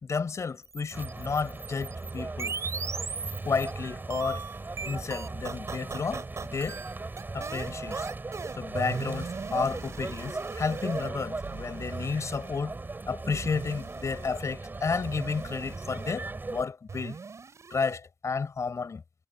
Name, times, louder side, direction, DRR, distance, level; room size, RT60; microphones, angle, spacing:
voice 1, 0.0-2.6 3.4-4.4 4.8-6.8 7.3-8.1 8.5-12.8 13.1-17.2 17.7-19.0, left 5 dB, 80° left, 4.7 m, -32 dB
sound 1, 0.6-3.7 4.1-11.1 11.4-12.5 13.3-14.4 15.0-16.1 16.9-18.0, right 5 dB, 80° right, 5.8 m, -39 dB
sound 2, 0.9-16.6, right 3 dB, 40° right, 5.5 m, -38 dB
wide cardioid pair, 100°, 5 cm